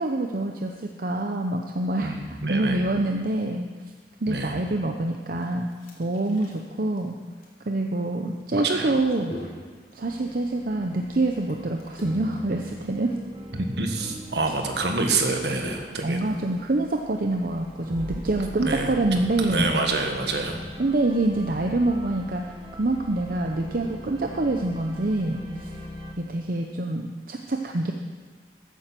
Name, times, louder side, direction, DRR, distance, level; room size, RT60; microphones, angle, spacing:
voice 1, 0.0-3.7 4.2-5.7 6.0-7.2 7.7-9.3 9.9-13.1 16.0-19.7 20.8-25.7 26.2-27.9, right 2 dB, 50° right, 3 dB, 0.7 m, -26 dB
voice 2, 2.0-2.8 4.3-4.6 8.5-9.0 13.5-16.2 18.6-20.6, right 3 dB, 70° right, 4 dB, 1.6 m, -27 dB
sound 1, 5.3-21.6, equal, 55° left, 3.0 m, -48 dB
sound 2, 10.0-26.1, equal, 25° right, 1.4 m, -42 dB
14.5 x 9.2 x 6.1 m, 1.5 s
head